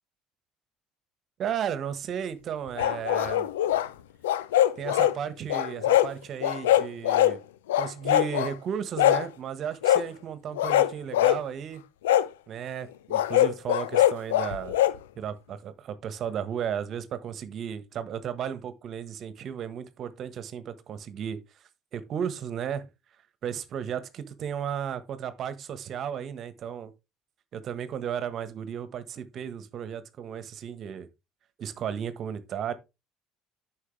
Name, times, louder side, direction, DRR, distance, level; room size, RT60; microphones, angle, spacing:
voice 1, 1.4-3.5 4.8-7.4 7.8-11.8 12.5-14.8 15.1-21.4 21.9-22.9 23.4-26.9 27.5-31.1 31.6-32.8, right 8 dB, 50° right, 1.4 m, -34 dB
sound 1, 2.8-3.9 4.2-5.2 5.5-6.1 6.4-7.4 7.7-8.5 9.0-9.3 9.8-10.1 10.6-11.4 12.0-12.3 13.1-15.0, left 12 dB, 85° left, 0.6 m, -22 dB
9.9 x 6.5 x 3.3 m
hypercardioid pair, 65°, 0 cm